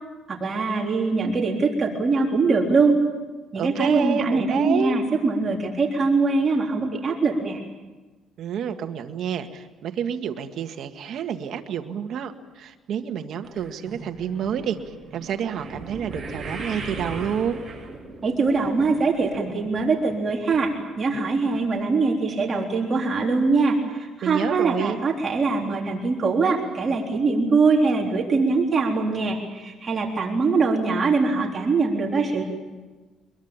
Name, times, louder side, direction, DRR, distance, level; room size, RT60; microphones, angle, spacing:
voice 1, 0.3-3.0 3.5-7.6 18.2-20.7 21.0-32.4, right 4 dB, 30° right, -1 dB, 3.8 m, -22 dB
voice 2, 3.6-5.0 8.4-17.6 24.2-25.0, right 8 dB, 60° right, 6 dB, 1.8 m, -29 dB
sound 1, 13.4-19.8 20.1-20.6 21.1-21.2 21.5-21.6, right 3 dB, 10° right, 7.4 m, -38 dB
25.0 x 22.0 x 8.9 m, 1.2 s
cardioid pair, 145°, 0 cm